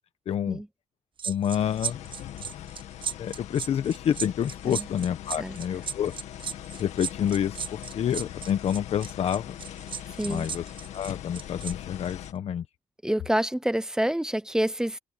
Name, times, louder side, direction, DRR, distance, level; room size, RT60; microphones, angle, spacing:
voice 1, 0.3-0.6 1.2-2.0 3.2-6.1 6.8-9.6 10.2-10.6 10.9-12.6, left 9 dB, 60° left, 1.1 m, -28 dB
sound 1, 1.2-11.7 12.0-12.3, right 7 dB, 45° right, 1.1 m, -35 dB
sound 2, 1.5-12.3, left 11 dB, 85° left, 2.2 m, -41 dB
voice 2, 13.0-15.0, right 1 dB, 5° right, 0.7 m, -27 dB
cardioid pair, 95°, 12 cm